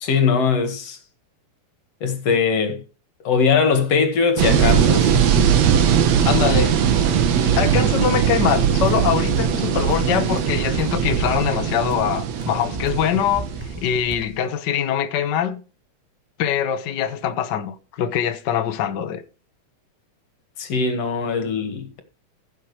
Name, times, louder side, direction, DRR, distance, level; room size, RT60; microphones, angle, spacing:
voice 1, 0.0-1.0 2.0-2.8 3.2-5.1 20.6-22.0, left 5 dB, 55° left, 2.8 m, -20 dB
sound 1, 4.4-14.1, right 8 dB, 65° right, 2.3 m, -20 dB
voice 2, 6.2-6.7 7.4-15.6 16.4-19.2, left 9 dB, 75° left, 1.0 m, -23 dB
sound 2, 8.4-14.3, right 2 dB, 5° right, 2.2 m, -36 dB
15.5 x 7.6 x 3.3 m
omnidirectional pair, 3.5 m